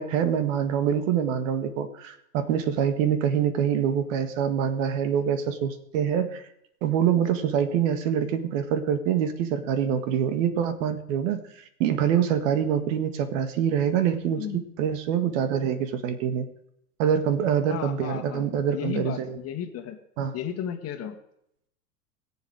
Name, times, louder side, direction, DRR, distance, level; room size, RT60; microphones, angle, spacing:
voice 1, 0.0-6.4 6.8-11.4 11.8-16.5 17.0-19.4 20.2-20.4, right 8 dB, 55° right, 11 dB, 1.7 m, -25 dB
voice 2, 17.7-20.0 20.3-21.2, left 9 dB, 30° left, 6 dB, 1.8 m, -34 dB
21.5 x 7.4 x 4.8 m, 0.75 s
hypercardioid pair, 125°, 47 cm